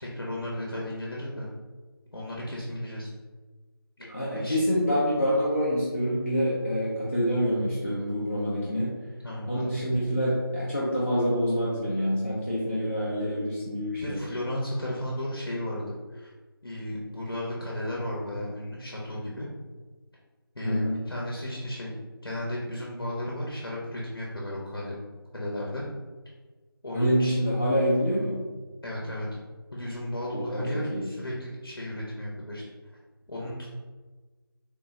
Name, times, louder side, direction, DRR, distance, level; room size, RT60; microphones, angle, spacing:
voice 1, 0.0-1.5 2.1-3.1 4.3-4.6 9.2-9.7 13.9-16.3 16.6-19.5 20.5-21.9 22.2-24.9 25.3-25.8 26.8-27.3 28.8-29.4 29.7-32.6 33.3-33.7, left 1 dB, 70° left, -4 dB, 0.9 m, -34 dB
voice 2, 4.1-8.9 9.5-14.2 20.6-21.0 26.9-28.4 30.3-30.6 30.9-31.1, equal, 35° left, -9 dB, 0.6 m, -26 dB
3.6 x 2.1 x 3.6 m, 1.3 s
figure-of-eight pair, 180°, 13 cm